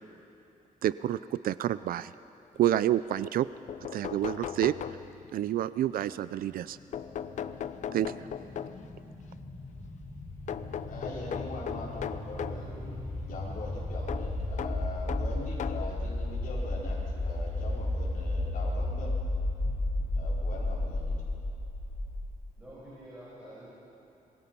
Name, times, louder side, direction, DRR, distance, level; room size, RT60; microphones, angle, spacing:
voice 1, 0.8-2.1 2.6-3.5 3.8-4.7 5.3-6.8 7.9-8.1, right 12 dB, 90° right, 15 dB, 0.4 m, -28 dB
sound 1, 3.4-3.5 3.7-5.4 6.9-9.0 10.5-12.7 14.1-16.0 16.8-16.9 18.2-18.3 18.7-18.8, left 8 dB, 55° left, 0.6 m, -38 dB
sound 2, 6.4-22.3, left 1 dB, 15° left, 4.5 m, -34 dB
voice 2, 10.9-12.9 13.2-19.1 20.1-21.2, left 2 dB, 75° left, -6 dB, 4.5 m, -42 dB
voice 3, 12.3-13.0 22.6-23.7, right 1 dB, 10° right, -8 dB, 5.5 m, -48 dB
26.0 x 21.0 x 5.5 m, 2.9 s
wide cardioid pair, 175°, 15 cm